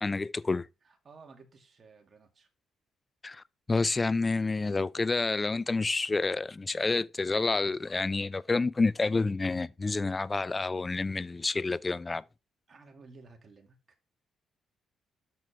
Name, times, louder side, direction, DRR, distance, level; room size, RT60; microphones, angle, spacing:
voice 1, 0.0-0.7 3.2-12.2, left 3 dB, 25° left, 0.3 m, -29 dB
voice 2, 0.8-2.5 4.3-4.8 12.7-13.8, right 4 dB, 40° right, 2.1 m, -55 dB
12.0 x 4.4 x 3.4 m
cardioid pair, 90°, 0 cm